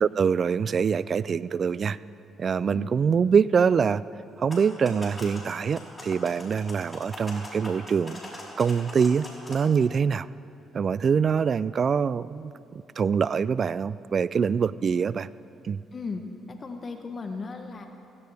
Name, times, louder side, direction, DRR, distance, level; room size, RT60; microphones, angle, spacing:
voice 1, 0.0-2.0 2.4-4.0 4.4-8.2 8.6-10.3 10.7-15.3 15.6-15.8, right 6 dB, 50° right, 18 dB, 0.3 m, -24 dB
voice 2, 2.6-2.9 15.9-16.2 16.5-17.9, left 4 dB, 40° left, 5 dB, 1.1 m, -36 dB
sound 1, 4.3-9.6, left 1 dB, 15° left, 4.1 m, -42 dB
16.5 x 16.0 x 3.5 m, 2.7 s
supercardioid pair, 70°, 0 cm